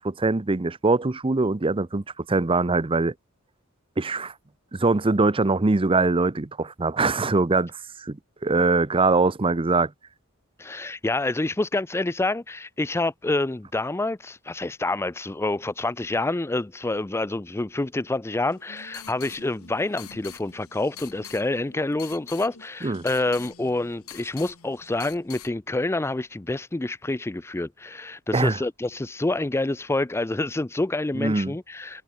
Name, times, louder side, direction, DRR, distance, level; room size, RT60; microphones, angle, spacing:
voice 1, 0.0-3.1 4.0-4.3 4.8-7.7 8.0-9.9 22.8-23.0 28.3-28.6 31.2-31.5, right 3 dB, 25° right, 0.7 m, -22 dB
voice 2, 10.6-32.0, left 2 dB, 10° left, 0.4 m, -27 dB
sound 1, 18.4-25.5, left 9 dB, 90° left, 2.0 m, -45 dB
head